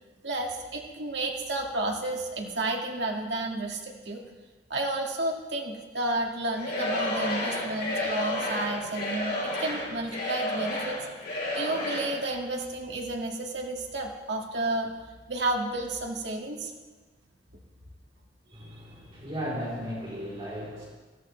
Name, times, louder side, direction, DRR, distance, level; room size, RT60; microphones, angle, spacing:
voice 1, 0.2-4.2 4.7-11.0 11.5-14.9 15.3-16.7 18.5-18.8, right 2 dB, 75° right, 0 dB, 2.0 m, -31 dB
Singing / Crowd, 6.5-12.2, left 1 dB, 60° left, 5.1 m, -31 dB
voice 2, 18.5-20.8, equal, 30° right, -7 dB, 3.6 m, -36 dB
16.0 x 14.5 x 3.3 m, 1.3 s
head